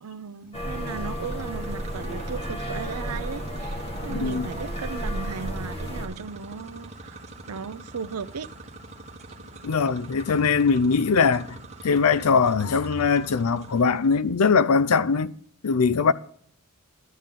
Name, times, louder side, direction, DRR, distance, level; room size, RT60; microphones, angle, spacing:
voice 1, 0.0-7.2 7.5-8.5 9.3-9.4, right 5 dB, 90° right, 0.6 m, -36 dB
sound 1, 0.5-6.1, equal, 25° left, 1.7 m, -32 dB
sound 2, 0.9-14.2, right 2 dB, 30° right, 1.2 m, -44 dB
voice 2, 4.1-4.4 9.6-11.6 11.8-15.3 15.6-16.1, left 5 dB, 75° left, 0.5 m, -21 dB
11.5 x 8.9 x 3.8 m
head